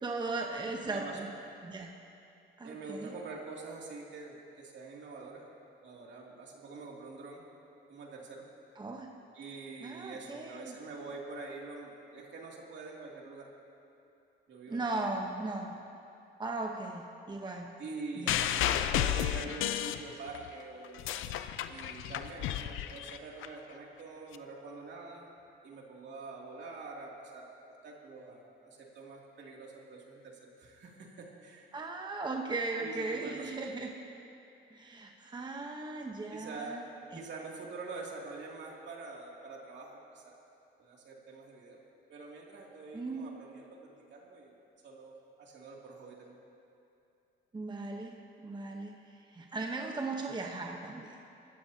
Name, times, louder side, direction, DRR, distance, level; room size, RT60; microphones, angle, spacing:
voice 1, 0.0-1.3 1.6-1.9 2.6-3.1 8.8-9.1 9.8-10.8 14.7-15.8 16.4-17.8 18.2-18.4 31.7-33.9 34.7-36.8 37.1-37.2 42.9-43.3 47.5-48.2 48.4-51.2, right 3 dB, 20° right, 2 dB, 1.0 m, -37 dB
voice 2, 0.8-1.2 2.6-5.4 5.8-7.4 7.9-8.4 9.3-13.5 14.5-15.0 17.8-21.4 21.7-25.3 25.6-31.7 32.8-33.5 36.3-36.8 37.1-40.3 40.8-41.8 42.1-44.5 44.8-46.4, right 3 dB, 65° right, -2 dB, 2.7 m, -45 dB
sound 1, 18.3-20.5 20.8-23.5 24.3-24.4, left 11 dB, 85° left, 0.6 m, -32 dB
24.0 x 14.5 x 2.9 m, 2.7 s
cardioid pair, 90°, 20 cm